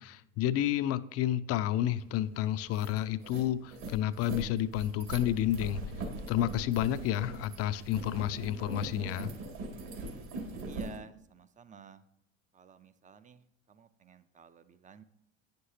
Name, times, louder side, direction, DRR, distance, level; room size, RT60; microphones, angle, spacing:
voice 1, 0.0-5.8 6.3-9.3, left 12 dB, 40° left, 13 dB, 0.5 m, -30 dB
sound 1, 2.1-2.2 2.5-11.0, right 2 dB, 65° right, 2.5 m, -41 dB
voice 2, 10.6-12.0 12.5-13.4 13.7-15.0, right 6 dB, 20° right, 12 dB, 0.5 m, -52 dB
9.2 x 6.6 x 2.9 m, 0.84 s
hypercardioid pair, 90°, 39 cm